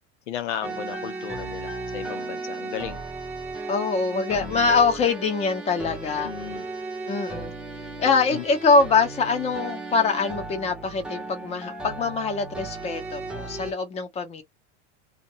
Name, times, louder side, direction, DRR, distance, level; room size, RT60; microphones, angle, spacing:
voice 1, 0.3-3.0 4.4-4.7 6.2-6.7 8.3-8.4, left 10 dB, 90° left, 0.9 m, -35 dB
sound 1, 0.6-13.7, right 3 dB, 5° right, 0.4 m, -35 dB
voice 2, 3.7-6.3 7.1-7.5 8.0-14.4, left 4 dB, 20° left, 0.9 m, -23 dB
2.6 x 2.4 x 2.7 m
supercardioid pair, 150°, 34 cm